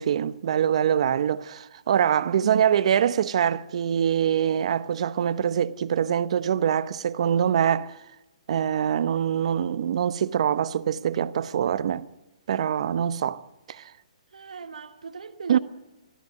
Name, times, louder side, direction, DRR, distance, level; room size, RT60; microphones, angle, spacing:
voice 1, 0.0-8.0 8.5-12.1 12.5-13.4 13.7-13.9 15.5-15.6, right 9 dB, 60° right, 0.9 m, -24 dB
voice 2, 14.3-15.6, right 5 dB, 80° right, 1.3 m, -37 dB
21.5 x 13.5 x 9.3 m
hypercardioid pair, 145°, 4 cm